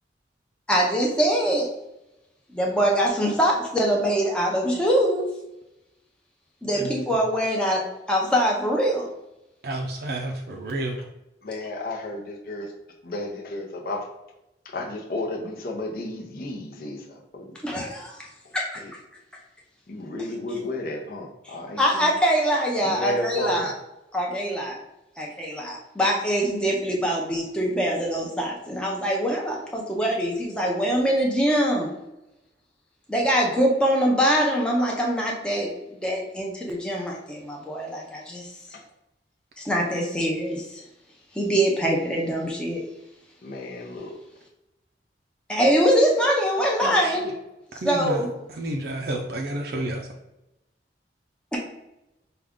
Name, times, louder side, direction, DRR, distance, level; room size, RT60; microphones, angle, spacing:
voice 1, 0.7-1.7 2.5-5.3 6.6-9.1 17.6-18.2 18.5-18.8 21.8-23.7 24.1-24.8 25.2-31.9 33.1-35.7 36.0-38.5 39.6-40.8 41.4-42.8 45.5-47.2 47.8-48.3, equal, 5° left, -2 dB, 0.6 m, -23 dB
voice 2, 9.6-11.0 46.8-47.3 47.8-48.2 48.5-50.0, right 1 dB, 55° right, 1 dB, 0.4 m, -30 dB
voice 3, 11.4-12.7 13.0-14.1 14.7-17.0 17.3-17.5 18.8-18.9 19.9-22.1 22.8-23.7 43.4-44.2, left 1 dB, 55° left, -1 dB, 0.7 m, -32 dB
4.9 x 2.3 x 3.6 m, 0.90 s
head